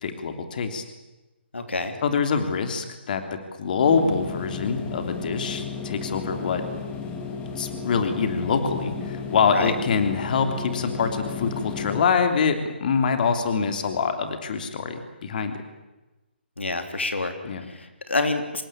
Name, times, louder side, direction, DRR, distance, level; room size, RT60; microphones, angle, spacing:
voice 1, 0.0-0.8 2.0-6.6 7.6-15.6 17.4-17.7, left 5 dB, 50° left, 7 dB, 3.2 m, -25 dB
voice 2, 1.5-1.9 9.5-9.7 16.6-17.3 17.7-18.6, left 2 dB, 85° left, 7 dB, 3.4 m, -27 dB
sound 1, 3.8-12.0, left 5 dB, 20° left, 2.8 m, -34 dB
26.5 x 20.5 x 8.9 m, 1.1 s
figure-of-eight pair, 145°, 6 cm